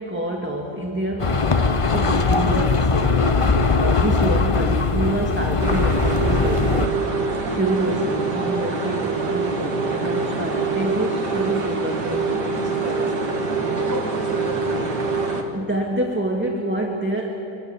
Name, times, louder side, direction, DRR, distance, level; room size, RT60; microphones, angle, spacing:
voice 1, 0.0-6.9 7.5-13.1 15.5-17.3, right 1 dB, 5° right, -1 dB, 1.9 m, -27 dB
sound 1, 1.2-6.9, left 4 dB, 40° left, 0.4 m, -20 dB
sound 2, 5.6-15.4, right 3 dB, 90° right, 2.5 m, -24 dB
28.0 x 25.5 x 7.0 m, 3.0 s
omnidirectional pair, 1.8 m